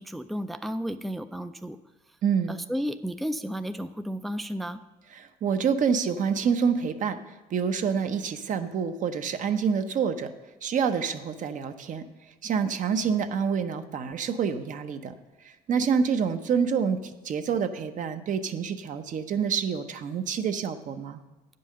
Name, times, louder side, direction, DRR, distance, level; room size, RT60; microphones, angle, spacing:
voice 1, 0.0-1.8 2.5-4.8, equal, ahead, 10 dB, 0.3 m, -33 dB
voice 2, 2.2-2.6 5.2-7.2 7.5-10.3 10.6-12.0 12.4-15.2 15.4-21.2, right 6 dB, 50° right, 8 dB, 0.7 m, -27 dB
9.1 x 5.4 x 6.5 m, 1.1 s
cardioid pair, 110°, 17 cm